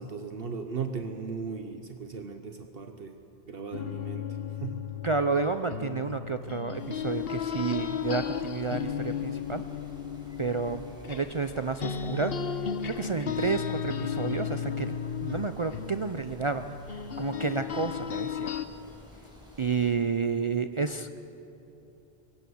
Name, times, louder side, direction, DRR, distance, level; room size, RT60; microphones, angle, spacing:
voice 1, 0.0-3.2 3.5-4.3 4.6-4.8, right 5 dB, 65° right, 6 dB, 1.1 m, -37 dB
sound 1, 3.7-11.5 11.8-18.7, left 8 dB, 70° left, 1.0 m, -34 dB
voice 2, 5.0-9.6 10.4-12.3 12.8-16.8 17.2-18.5 19.6-21.2, right 4 dB, 40° right, 9 dB, 0.5 m, -30 dB
sound 2, 6.8-19.9, equal, 5° right, 4.6 m, -52 dB
22.0 x 17.5 x 7.0 m, 3.0 s
omnidirectional pair, 1.0 m